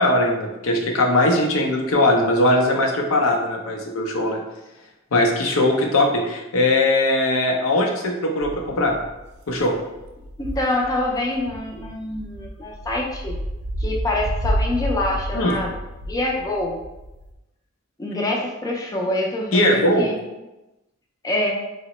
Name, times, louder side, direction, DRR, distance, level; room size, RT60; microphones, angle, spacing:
voice 1, 0.0-4.4 5.1-9.0 9.5-9.7 15.3-15.6 19.5-20.1, left 1 dB, 85° left, 1 dB, 0.5 m, -20 dB
sound 1, 8.4-17.3, equal, 55° right, 0.4 m, -30 dB
voice 2, 10.4-13.4 13.8-15.7 16.1-16.8 18.0-20.2 21.2-21.5, left 1 dB, 15° left, -1 dB, 0.3 m, -25 dB
2.8 x 2.1 x 4.0 m, 1.0 s
head